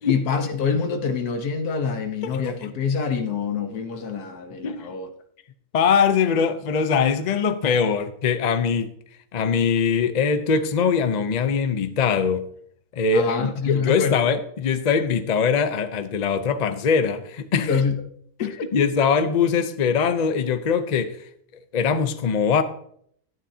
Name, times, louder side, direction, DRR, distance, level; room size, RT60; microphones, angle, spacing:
voice 1, 0.1-5.1 13.1-14.1 17.6-18.0 18.4-18.7, left 5 dB, 80° left, 1.5 m, -26 dB
voice 2, 5.7-8.9 9.3-12.4 12.9-17.7 18.4-21.2 21.7-22.6, left 6 dB, 50° left, 0.5 m, -22 dB
12.0 x 10.0 x 2.8 m
omnidirectional pair, 1.6 m